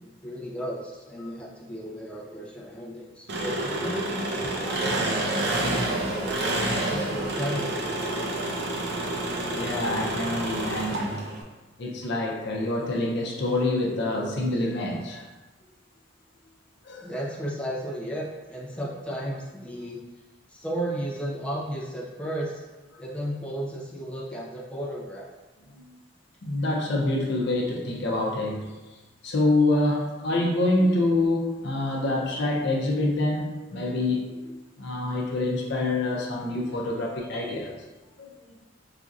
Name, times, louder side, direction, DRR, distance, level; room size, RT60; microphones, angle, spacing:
voice 1, 0.0-6.4 6.9-8.4 17.0-20.0 20.5-22.6 23.0-25.3, equal, 5° left, -5 dB, 0.6 m, -34 dB
Engine, 3.3-11.4, right 1 dB, 60° right, 0.6 m, -28 dB
voice 2, 9.5-11.3 11.8-15.2 16.8-17.1 26.4-28.7 29.2-34.5 34.8-37.7 38.2-38.3, left 2 dB, 60° left, -2 dB, 0.6 m, -26 dB
4.9 x 2.7 x 2.4 m, 1.2 s
head